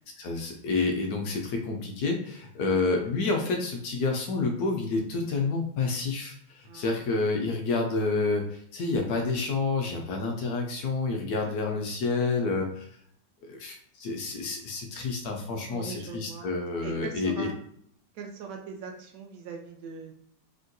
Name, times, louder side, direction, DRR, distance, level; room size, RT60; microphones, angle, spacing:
voice 1, 0.2-12.9 13.5-17.5, left 3 dB, 70° left, 2 dB, 0.9 m, -29 dB
voice 2, 2.6-2.9 6.6-7.0 11.4-11.8 15.7-16.5 16.8-17.5 18.1-20.1, right 5 dB, 75° right, 2 dB, 0.8 m, -41 dB
3.5 x 2.2 x 2.5 m, 0.67 s
omnidirectional pair, 2.0 m